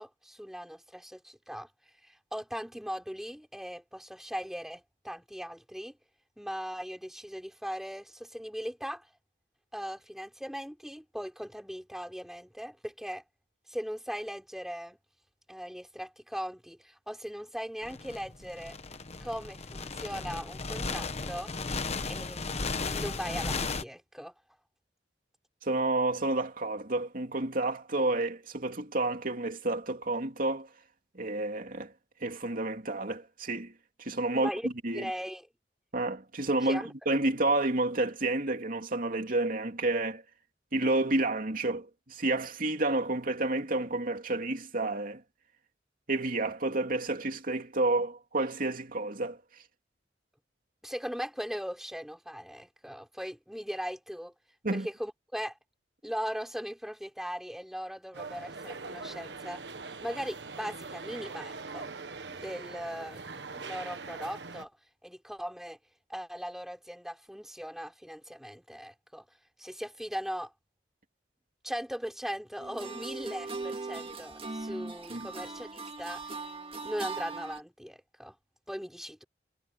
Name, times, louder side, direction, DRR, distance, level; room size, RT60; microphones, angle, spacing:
voice 1, 0.0-1.7 2.0-6.0 6.4-9.0 9.7-13.2 13.7-15.0 15.5-18.8 19.2-21.5 22.1-24.3 34.3-35.5 36.6-36.9 50.8-54.3 54.7-55.5 56.0-59.6 60.0-61.9 62.3-64.7 65.0-65.8 66.1-69.2 69.6-70.5 71.6-76.2 76.8-78.4 78.7-79.2, equal, ahead, 6.2 m, -39 dB
sound 1, 17.8-23.8, left 4 dB, 40° left, 1.1 m, -35 dB
voice 2, 25.6-30.7 31.1-31.9 32.2-33.7 34.0-35.1 35.9-40.2 40.7-45.2 46.1-49.4 54.6-54.9 75.1-75.3, right 2 dB, 50° right, 2.8 m, -30 dB
sound 2, 58.1-64.6, right 4 dB, 70° right, 1.4 m, -42 dB
sound 3, 72.6-77.6, right 3 dB, 35° right, 2.1 m, -39 dB
head